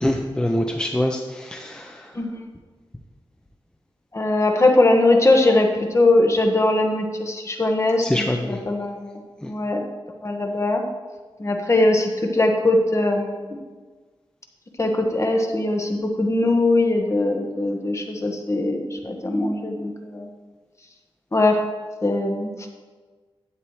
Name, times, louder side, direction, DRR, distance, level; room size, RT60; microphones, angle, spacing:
voice 1, 0.0-2.1 8.0-8.6 9.4-9.5, left 1 dB, 10° left, 2 dB, 0.7 m, -25 dB
voice 2, 4.1-5.7 5.9-9.8 10.2-10.8 11.4-13.6 14.8-20.3 21.3-21.6 22.0-22.5, left 2 dB, 30° left, 3 dB, 1.4 m, -21 dB
11.5 x 8.4 x 3.2 m, 1.4 s
wide cardioid pair, 85°, 9 cm